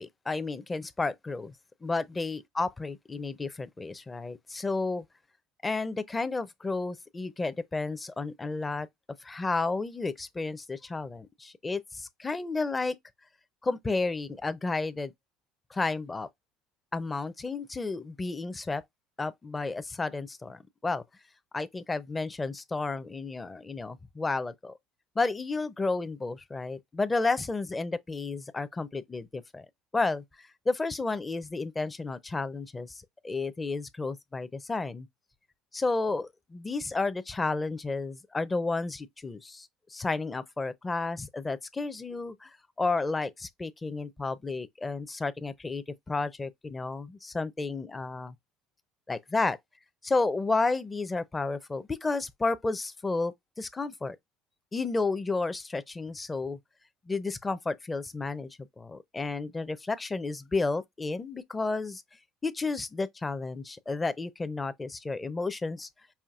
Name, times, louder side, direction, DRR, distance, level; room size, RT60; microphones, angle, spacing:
voice 1, 0.0-1.5 1.8-5.0 5.6-8.9 9.2-13.0 13.6-15.1 15.7-16.3 16.9-18.8 19.2-21.0 21.5-24.7 25.2-29.7 29.9-35.1 35.7-42.5 42.8-48.3 49.1-49.6 50.0-54.2 54.7-56.6 57.1-62.0 62.4-65.9, left 3 dB, 15° left, 0.5 m, -32 dB
5.6 x 2.5 x 2.4 m
supercardioid pair, 110°, 0 cm